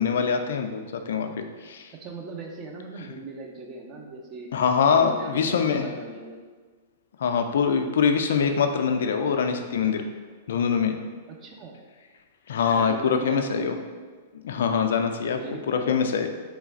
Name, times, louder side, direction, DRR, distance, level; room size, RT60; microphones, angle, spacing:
voice 1, 0.0-1.9 4.5-5.9 7.2-10.1 10.5-11.0 12.5-13.7 14.4-15.4 15.7-16.3, left 6 dB, 70° left, 6 dB, 0.3 m, -24 dB
voice 2, 2.0-4.5 4.9-6.4 11.3-11.7 12.8-14.0 15.3-16.0, right 3 dB, 35° right, 1 dB, 0.6 m, -39 dB
3.1 x 2.3 x 3.9 m, 1.5 s
hypercardioid pair, 115°, 0 cm